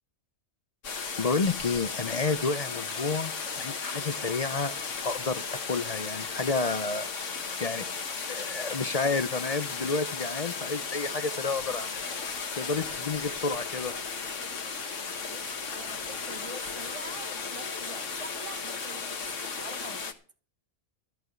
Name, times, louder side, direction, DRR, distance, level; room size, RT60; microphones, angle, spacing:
sound 1, 0.8-20.1, left 5 dB, 60° left, 1.7 m, -35 dB
voice 1, 1.2-4.7 5.0-7.3 7.6-7.9 8.3-12.0 12.6-13.9, left 4 dB, 45° left, 0.5 m, -30 dB
voice 2, 15.2-20.1, right 3 dB, 25° right, 1.2 m, -45 dB
13.5 x 5.9 x 9.2 m
omnidirectional pair, 1.4 m